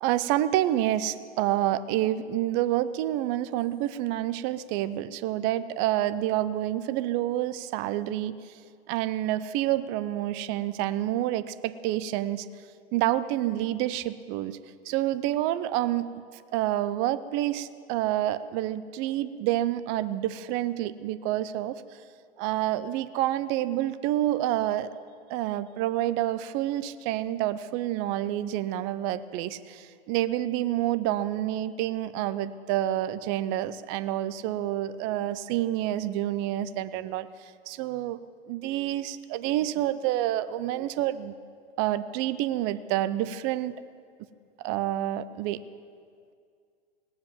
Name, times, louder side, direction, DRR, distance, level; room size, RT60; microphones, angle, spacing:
voice 1, 0.0-8.6 8.9-12.5 12.9-14.6 14.8-16.1 16.3-22.0 22.4-24.9 25.3-38.2 38.5-41.3 41.8-43.8 44.6-45.6, right 13 dB, 35° right, 14 dB, 0.6 m, -28 dB
18.5 x 7.5 x 7.7 m, 2.2 s
hypercardioid pair, 115°, 32 cm